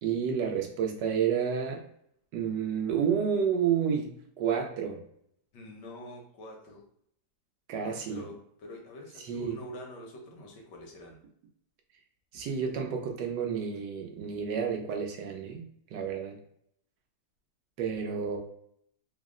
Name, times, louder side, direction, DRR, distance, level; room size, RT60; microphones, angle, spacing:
voice 1, 0.0-1.8 2.3-5.0 7.7-8.2 9.2-9.6 12.3-15.6 15.9-16.4 17.8-18.4, right 7 dB, 90° right, 2 dB, 1.4 m, -30 dB
voice 2, 5.5-6.9 7.8-11.2, left 1 dB, 85° left, 1 dB, 1.5 m, -46 dB
4.0 x 2.0 x 3.6 m, 0.69 s
omnidirectional pair, 1.8 m